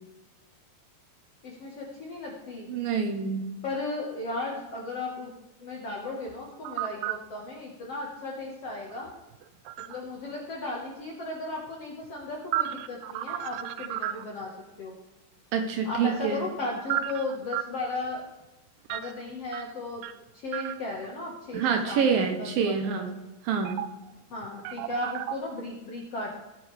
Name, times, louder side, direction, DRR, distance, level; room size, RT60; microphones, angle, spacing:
voice 1, 1.4-2.7 3.6-5.3 5.6-9.1 9.8-14.5 14.8-15.0 15.8-18.3 18.9-20.1 20.3-23.1 24.3-26.4, left 2 dB, 55° left, -2 dB, 1.8 m, -35 dB
voice 2, 2.7-3.5 15.5-16.5 21.5-23.2 23.4-23.8, right 6 dB, 75° right, 5 dB, 2.4 m, -27 dB
sound 1, 6.3-7.2 8.9-10.1 12.0-14.5 15.9-17.7 18.9-19.1 19.5-20.2 20.5-21.1 21.7-21.8 23.7-24.1 24.4-25.4, right 13 dB, 90° right, 2.7 m, -33 dB
18.5 x 8.3 x 3.4 m, 1.0 s
omnidirectional pair, 4.7 m